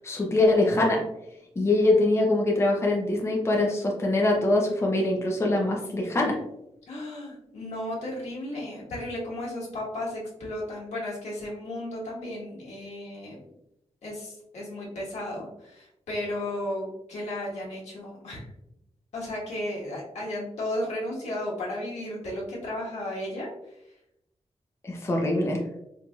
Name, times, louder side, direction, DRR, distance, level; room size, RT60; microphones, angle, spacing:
voice 1, 0.0-1.0 1.6-6.4 24.8-25.6, left 2 dB, 25° left, -1 dB, 0.6 m, -23 dB
voice 2, 6.9-13.4 14.0-18.4 19.1-23.7, left 1 dB, 90° left, -4 dB, 1.3 m, -34 dB
4.5 x 2.7 x 2.3 m, 0.83 s
wide cardioid pair, 145°, 11 cm